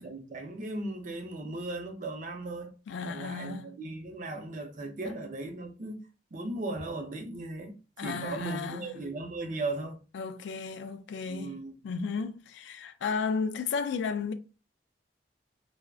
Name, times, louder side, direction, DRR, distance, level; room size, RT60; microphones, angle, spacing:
voice 1, 0.0-2.7 3.0-6.0 6.3-10.0 11.3-11.7, right 2 dB, 45° right, 0.6 m, -37 dB
voice 2, 2.9-3.7 8.0-9.0 10.1-11.6 11.8-14.3, left 5 dB, 75° left, 0.3 m, -33 dB
3.4 x 2.0 x 2.3 m
head